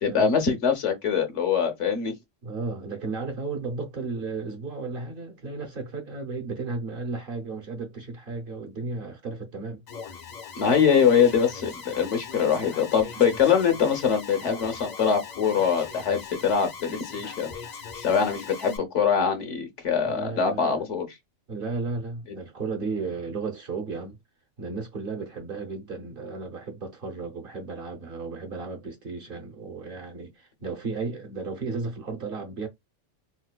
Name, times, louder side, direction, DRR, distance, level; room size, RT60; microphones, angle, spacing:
voice 1, 0.0-2.1 10.6-17.5 18.0-21.1, left 7 dB, 70° left, 1.2 m, -23 dB
voice 2, 2.4-9.8 20.0-20.8 21.5-24.2 24.6-32.7, right 4 dB, 50° right, 0.8 m, -34 dB
Alarm, 9.9-18.8, left 6 dB, 50° left, 0.5 m, -40 dB
4.0 x 2.2 x 2.2 m
omnidirectional pair, 1.3 m